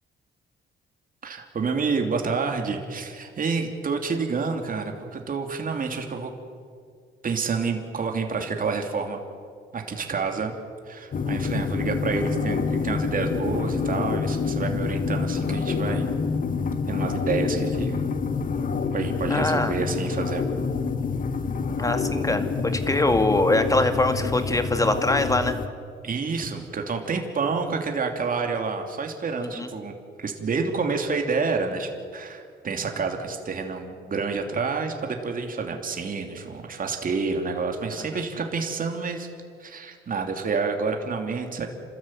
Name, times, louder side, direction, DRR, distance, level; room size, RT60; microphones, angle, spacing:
voice 1, 1.2-6.3 7.2-9.2 9.7-10.5 10.9-16.1 16.9-18.0 18.9-20.5 26.0-39.3 39.6-41.7, right 4 dB, 45° right, 4 dB, 3.0 m, -28 dB
sound 1, 11.1-25.7, left 5 dB, 45° left, 1.4 m, -27 dB
voice 2, 19.3-19.7 21.8-25.6 29.6-29.7, left 2 dB, 15° left, 8 dB, 2.2 m, -23 dB
29.0 x 13.5 x 9.3 m, 2.2 s
cardioid pair, 90°, 20 cm